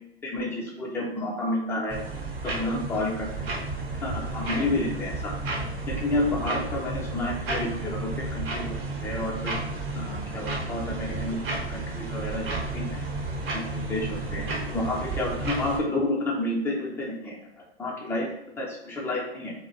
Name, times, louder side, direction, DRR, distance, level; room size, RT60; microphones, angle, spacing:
voice 1, 0.2-2.0 2.4-3.3 4.0-5.3 5.9-9.6 10.0-13.0 13.5-17.5 17.8-18.3 18.6-19.5, left 1 dB, 10° left, -3 dB, 0.4 m, -30 dB
sound 1, 1.9-15.8, right 2 dB, 55° right, 0.9 m, -32 dB
2.4 x 2.0 x 2.6 m, 0.84 s
hypercardioid pair, 105°, 33 cm